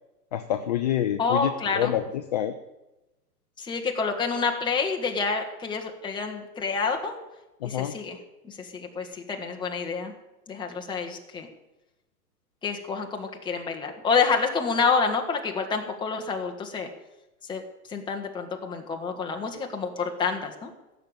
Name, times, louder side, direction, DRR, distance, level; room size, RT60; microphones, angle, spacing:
voice 1, 0.3-2.5 7.6-7.9, left 11 dB, 30° left, 8 dB, 0.5 m, -27 dB
voice 2, 1.2-1.9 3.6-7.2 7.6-8.2 8.4-10.1 10.5-11.5 12.6-16.9 17.5-17.6 17.9-20.7, left 5 dB, 10° left, 2 dB, 1.3 m, -28 dB
16.0 x 6.9 x 8.9 m, 0.99 s
hypercardioid pair, 150°, 47 cm